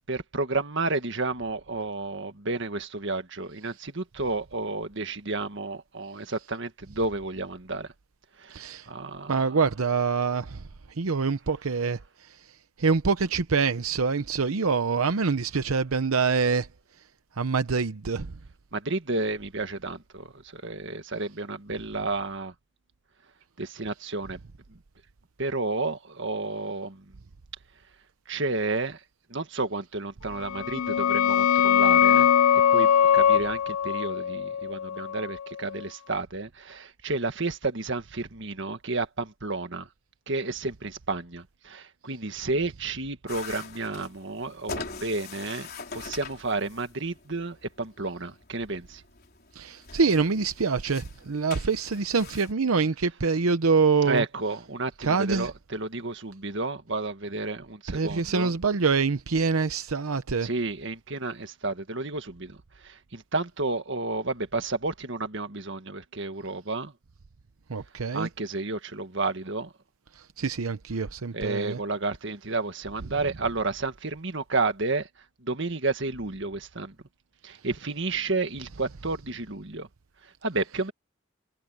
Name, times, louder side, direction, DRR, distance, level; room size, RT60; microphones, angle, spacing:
voice 1, 0.0-7.9 8.4-9.6 18.7-22.5 23.6-24.4 25.4-27.0 28.3-29.0 29.3-32.3 32.7-39.9 40.3-49.0 54.1-58.5 60.4-62.6 62.8-66.9 68.1-69.7 71.3-75.1 75.4-76.9 77.4-79.9 80.4-80.9, right 3 dB, 60° right, 1.8 m, -31 dB
voice 2, 8.5-8.9 9.3-10.6 11.0-12.5 12.8-16.7 17.4-18.3 49.5-54.2 55.0-55.5 57.9-60.5 67.7-68.3 70.2-71.8, right 4 dB, 85° right, 0.8 m, -25 dB
sound 1, 30.4-35.8, left 8 dB, 90° left, 0.5 m, -22 dB
sound 2, 43.3-52.5, left 4 dB, 45° left, 4.0 m, -43 dB
head